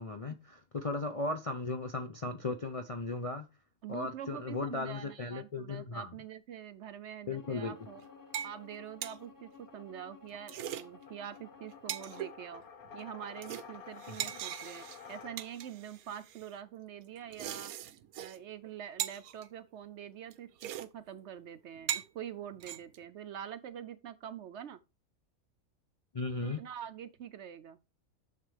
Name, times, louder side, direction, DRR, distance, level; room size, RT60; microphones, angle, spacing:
voice 1, 0.0-3.5 3.9-6.1 7.3-7.7 26.1-26.6, left 3 dB, 55° left, 0.4 m, -36 dB
voice 2, 3.8-8.0 8.4-12.6 12.9-17.7 18.2-24.8 26.4-27.8, right 9 dB, 65° right, 0.7 m, -45 dB
Bowed string instrument, 7.3-12.4, left 6 dB, 15° left, 1.3 m, -55 dB
sound 1, 7.5-15.8, left 6 dB, 85° left, 1.7 m, -52 dB
sound 2, 7.8-8.0 8.3-8.6 8.8-9.2 10.3-10.8 11.3-11.4 11.7-12.3 12.8-13.1 13.4-16.5 17.2-18.4 18.6-18.7 19.0-19.5 20.3-20.4 20.6-20.9 21.1-21.2 21.8-22.1 22.6-23.0, right 11 dB, 90° right, 1.1 m, -40 dB
9.6 x 6.7 x 3.3 m
omnidirectional pair, 1.5 m